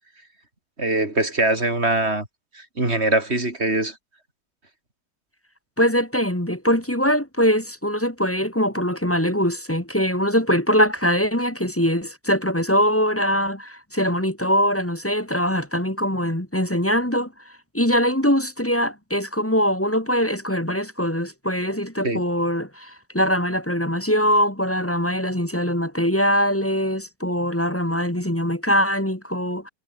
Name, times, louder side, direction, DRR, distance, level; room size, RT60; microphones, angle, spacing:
voice 1, 0.8-2.3 2.8-3.9 22.0-22.2, right 2 dB, 35° right, 5.3 m, -22 dB
voice 2, 5.8-17.3 17.7-29.7, equal, 10° left, 1.7 m, -22 dB
omnidirectional pair, 1.9 m